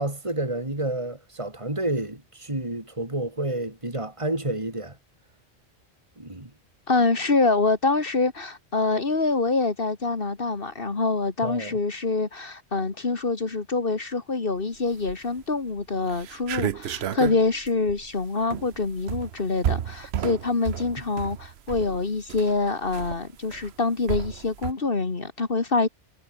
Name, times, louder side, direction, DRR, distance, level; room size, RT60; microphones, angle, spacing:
voice 1, 0.0-5.0 6.2-6.5 11.4-11.8, right 1 dB, 25° right, 4.0 m, -30 dB
voice 2, 6.9-25.9, left 3 dB, 50° left, 2.1 m, -25 dB
sound 1, 14.9-15.4 15.8-15.9 16.1-24.7, right 10 dB, 65° right, 1.0 m, -32 dB
omnidirectional pair, 1.2 m